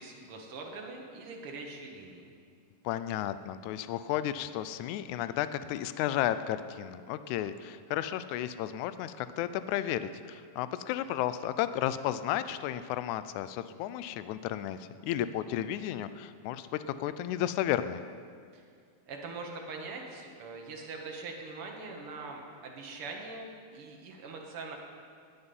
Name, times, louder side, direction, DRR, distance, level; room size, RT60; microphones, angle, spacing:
voice 1, 0.0-2.3 18.5-18.6 19.1-24.8, right 3 dB, 50° right, 1 dB, 2.0 m, -42 dB
voice 2, 2.8-18.0, left 12 dB, 80° left, 13 dB, 1.7 m, -33 dB
18.0 x 9.8 x 5.5 m, 2.2 s
omnidirectional pair, 3.9 m